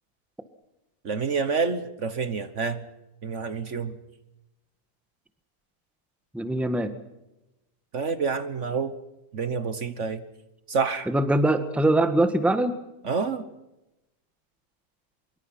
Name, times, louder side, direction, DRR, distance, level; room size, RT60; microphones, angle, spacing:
voice 1, 1.0-2.8 3.2-4.0 7.9-8.9 9.3-10.2 10.7-11.1 13.0-13.4, right 5 dB, 55° right, 12 dB, 1.4 m, -28 dB
voice 2, 6.3-6.9 11.1-12.8, right 1 dB, ahead, 10 dB, 1.4 m, -22 dB
24.5 x 23.5 x 5.7 m, 0.94 s
omnidirectional pair, 1.6 m